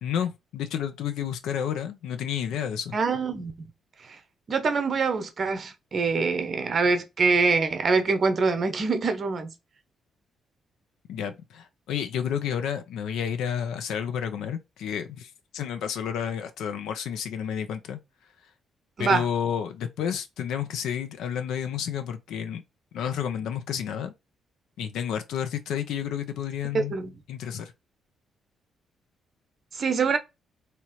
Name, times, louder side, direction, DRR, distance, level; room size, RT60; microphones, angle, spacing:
voice 1, 0.0-3.0 11.1-18.0 19.0-22.6 22.9-24.1 24.8-27.0 27.3-27.7, left 8 dB, 70° left, 0.4 m, -30 dB
voice 2, 2.9-3.7 4.5-9.5 19.0-19.2 26.7-27.1 29.7-30.2, right 4 dB, 50° right, 0.7 m, -24 dB
3.2 x 2.8 x 2.7 m
hypercardioid pair, 45°, 0 cm